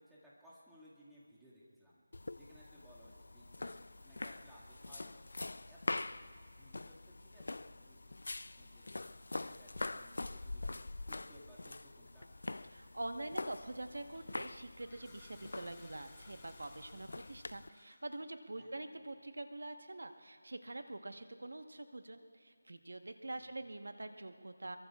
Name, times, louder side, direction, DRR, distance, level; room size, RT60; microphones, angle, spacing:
voice 1, 0.0-2.0 2.3-5.2 5.7-6.0 6.6-9.1 9.5-10.8 11.1-12.3 18.6-18.9 23.2-23.6, equal, 5° right, -10 dB, 2.0 m, -61 dB
sound 1, 2.1-17.7, left 2 dB, 70° left, 0.4 m, -45 dB
voice 2, 12.7-24.8, right 2 dB, 85° right, 8 dB, 1.2 m, -45 dB
Toilet flush, 13.9-18.1, left 3 dB, 15° left, 1.6 m, -62 dB
24.5 x 23.0 x 2.4 m, 2.3 s
figure-of-eight pair, 175°, 0 cm